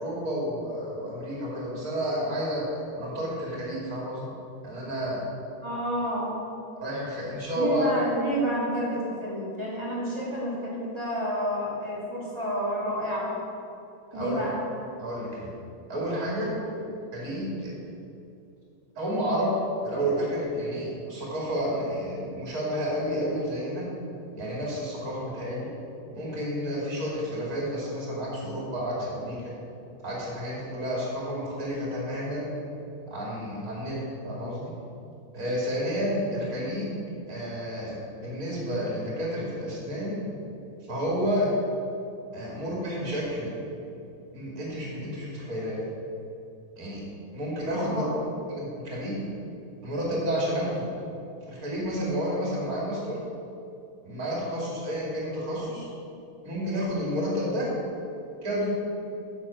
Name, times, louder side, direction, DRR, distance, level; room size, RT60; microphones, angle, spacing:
voice 1, 0.0-2.6 2.9-4.3 4.6-5.2 6.8-7.8 14.1-14.4 15.0-15.5 15.9-16.5 17.1-17.7 19.0-19.5 19.8-23.8 24.3-25.7 26.1-29.5 30.0-32.6 33.0-34.7 35.3-37.0 37.3-40.3 40.9-41.5 42.3-43.5 44.3-45.8 46.8-47.0 47.3-48.1 48.5-49.3 49.8-50.9 51.5-53.2 54.0-55.9 56.4-57.7 58.4-58.8, equal, 45° right, -5 dB, 2.8 m, -30 dB
voice 2, 5.6-6.5 7.5-13.3 14.1-14.6 16.4-16.8 47.8-48.2, equal, 15° right, -7 dB, 2.2 m, -30 dB
7.8 x 6.9 x 5.7 m, 2.7 s
omnidirectional pair, 2.2 m